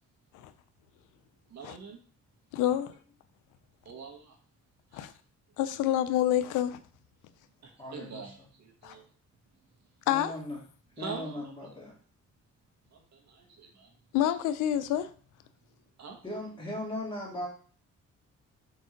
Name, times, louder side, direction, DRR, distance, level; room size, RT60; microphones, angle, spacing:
voice 1, 1.5-2.0 3.8-4.4 4.9-5.1 5.6-5.8 7.6-9.0 11.0-11.7 12.9-14.0 16.0-16.2, right 5 dB, 65° right, 1.8 m, -44 dB
voice 2, 2.5-2.9 4.9-5.1 5.6-6.8 8.8-9.0 10.1-10.3 14.1-15.1, left 11 dB, 90° left, 0.5 m, -27 dB
voice 3, 7.8-8.2 10.1-10.6 11.0-11.9 16.2-17.5, left 1 dB, 15° left, 3.1 m, -38 dB
4.8 x 4.4 x 4.6 m
cardioid pair, 90°, 30 cm